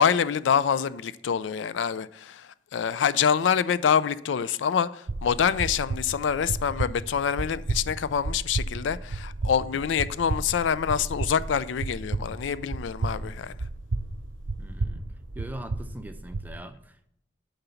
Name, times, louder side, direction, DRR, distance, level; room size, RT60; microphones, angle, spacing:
voice 1, 0.0-13.5, left 7 dB, 85° left, 0.4 m, -26 dB
sound 1, 5.1-16.5, right 2 dB, 80° right, 0.6 m, -33 dB
voice 2, 14.6-15.1 15.3-17.1, right 1 dB, 10° right, 0.6 m, -41 dB
10.5 x 4.0 x 5.7 m
head